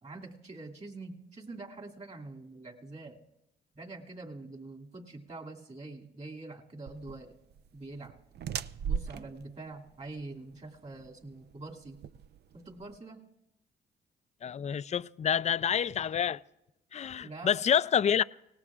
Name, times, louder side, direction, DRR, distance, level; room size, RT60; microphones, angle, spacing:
voice 1, 0.0-3.2 3.7-7.3 7.7-8.2 8.8-12.0 12.5-13.3 17.2-17.6, right 2 dB, 35° right, 2.5 m, -45 dB
sound 1, 6.9-13.0, right 7 dB, 55° right, 0.5 m, -40 dB
voice 2, 14.4-16.4 16.9-18.2, left 8 dB, 35° left, 0.4 m, -28 dB
25.0 x 18.5 x 2.5 m
supercardioid pair, 55°, 20 cm